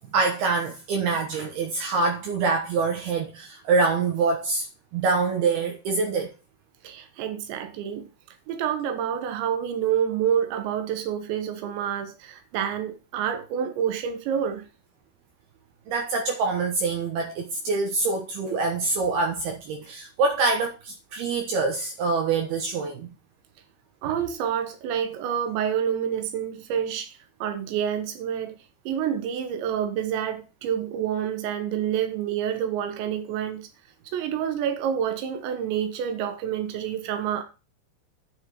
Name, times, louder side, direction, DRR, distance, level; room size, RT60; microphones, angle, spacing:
voice 1, 0.1-4.7 4.9-6.3 15.9-23.2, right 4 dB, 70° right, 3.0 m, -25 dB
voice 2, 6.8-8.1 8.5-14.7 24.0-28.6 28.9-33.7 34.1-37.4, right 9 dB, 90° right, 3.6 m, -28 dB
10.0 x 5.7 x 4.8 m
omnidirectional pair, 5.0 m